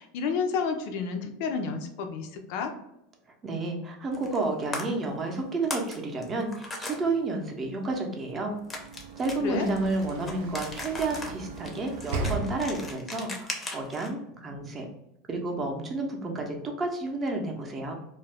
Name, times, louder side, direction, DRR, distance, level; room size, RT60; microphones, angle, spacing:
voice 1, 0.0-2.7 9.4-9.7, left 5 dB, 65° left, 5 dB, 0.4 m, -30 dB
voice 2, 3.4-8.6 9.2-14.9 15.3-17.9, right 2 dB, 25° right, 2 dB, 0.6 m, -31 dB
sound 1, 4.1-4.5 4.7-4.8 5.4-6.0 6.2-7.0 8.7-14.1, left 2 dB, 20° left, 0.6 m, -38 dB
Sliding door / Slam, 8.4-13.2, right 3 dB, 80° right, 0.4 m, -37 dB
2.3 x 2.1 x 3.3 m, 0.82 s
supercardioid pair, 125°, 0 cm